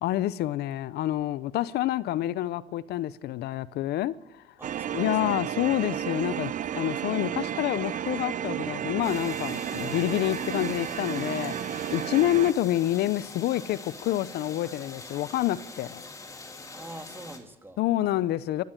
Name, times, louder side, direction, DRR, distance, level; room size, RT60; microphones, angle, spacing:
voice 1, 0.0-4.4 4.9-11.5 11.9-16.0 17.8-18.6, left 14 dB, 75° left, 0.7 m, -28 dB
voice 2, 4.6-5.4 12.3-12.6 16.7-17.8 18.6-18.7, right 1 dB, 15° right, 2.3 m, -45 dB
sound 1, 4.6-12.5, right 10 dB, 50° right, 0.8 m, -32 dB
sound 2, 9.0-17.4, left 3 dB, 20° left, 3.2 m, -44 dB
26.0 x 13.5 x 9.0 m
cardioid pair, 110°, 17 cm